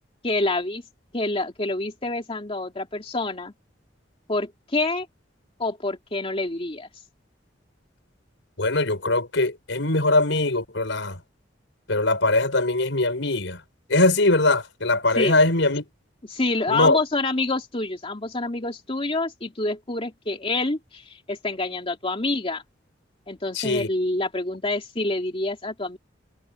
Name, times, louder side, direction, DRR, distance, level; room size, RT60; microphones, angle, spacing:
voice 1, 0.2-0.8 1.1-3.5 4.3-5.1 5.6-6.9 15.2-15.4 16.3-22.6 23.3-26.0, left 2 dB, 30° left, 2.7 m, -27 dB
voice 2, 8.6-11.2 11.9-13.6 13.9-15.9 16.7-17.0 23.5-23.9, left 2 dB, 85° left, 5.2 m, -21 dB
head